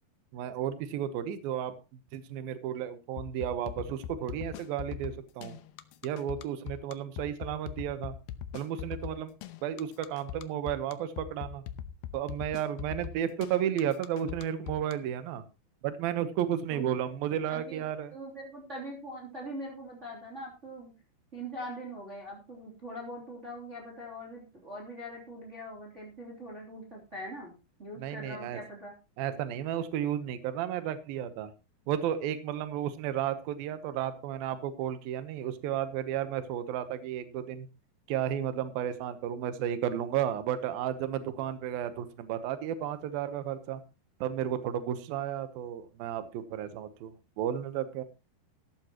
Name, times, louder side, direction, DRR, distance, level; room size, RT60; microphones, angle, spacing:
voice 1, 0.3-1.7 2.1-5.6 6.0-8.1 8.5-9.3 9.6-11.6 12.1-15.4 15.8-18.1 28.0-28.6 29.2-31.5 31.9-37.7 38.1-43.8 44.2-48.0, right 10 dB, 75° right, 11 dB, 2.8 m, -33 dB
sound 1, 3.2-14.9, left 10 dB, 80° left, 2.6 m, -40 dB
voice 2, 16.7-17.1 17.5-17.8 18.1-20.9 21.3-27.5 27.8-28.9, right 1 dB, 20° right, -2 dB, 3.2 m, -42 dB
15.0 x 12.5 x 3.0 m, 0.28 s
omnidirectional pair, 4.4 m